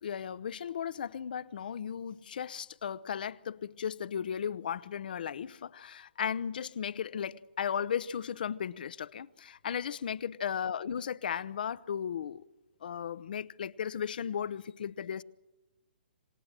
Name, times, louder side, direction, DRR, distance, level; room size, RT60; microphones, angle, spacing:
voice 1, 0.0-12.4 12.8-15.2, left 8 dB, 60° left, 0.8 m, -36 dB
27.0 x 18.0 x 7.6 m
figure-of-eight pair, 130°, 6 cm